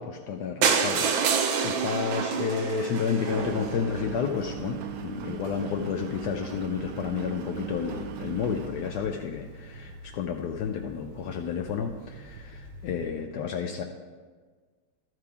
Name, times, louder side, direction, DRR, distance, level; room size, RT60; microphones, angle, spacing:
voice 1, 0.0-13.8, left 7 dB, 80° left, 3 dB, 0.9 m, -31 dB
sound 1, 0.6-4.5 5.1-5.2 5.5-5.6 5.9-6.0 6.1-6.2, right 6 dB, 70° right, 1.5 m, -27 dB
Engine, 3.3-13.1, right 7 dB, 90° right, 1.6 m, -40 dB
12.0 x 4.7 x 4.8 m, 1.5 s
omnidirectional pair, 2.3 m